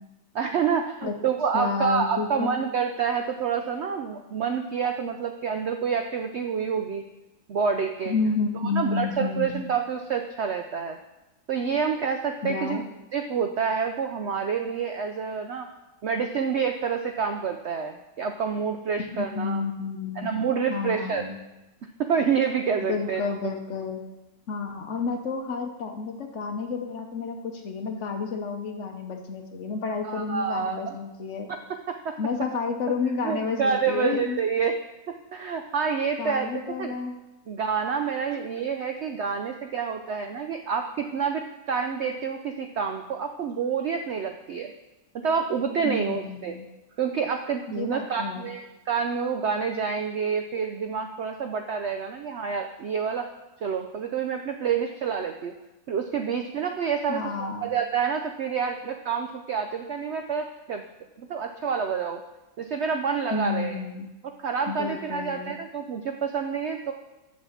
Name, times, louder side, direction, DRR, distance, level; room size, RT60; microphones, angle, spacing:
voice 1, 0.3-7.0 7.5-8.1 8.7-11.0 11.5-12.8 13.1-15.7 16.0-19.6 20.2-21.2 22.0-23.2 30.0-30.8 31.9-32.2 33.2-34.7 35.1-36.9 37.5-44.7 45.2-46.6 47.0-53.3 53.6-55.5 55.9-60.8 61.2-62.2 62.6-63.8 64.4-66.9, right 6 dB, 70° right, 5 dB, 0.6 m, -28 dB
voice 2, 1.5-2.5 8.1-9.6 12.4-12.8 19.2-20.4 20.7-21.4 22.9-24.0 24.5-31.5 32.2-34.4 36.2-37.2 45.8-46.7 47.8-48.5 57.1-57.7 63.3-64.1 64.7-65.5, left 5 dB, 55° left, 5 dB, 1.0 m, -30 dB
7.0 x 6.6 x 7.0 m, 1.0 s
omnidirectional pair, 1.7 m